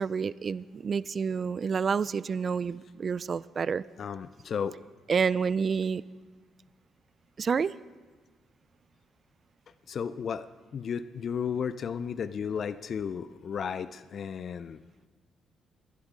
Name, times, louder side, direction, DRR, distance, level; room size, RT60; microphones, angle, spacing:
voice 1, 0.0-3.8 5.1-6.0 7.4-7.7, right 6 dB, 45° right, 19 dB, 0.3 m, -29 dB
voice 2, 4.0-4.8 9.9-10.5 10.7-14.8, left 7 dB, 55° left, 14 dB, 0.4 m, -33 dB
18.5 x 12.0 x 3.7 m, 1.4 s
cardioid pair, 90°, 0 cm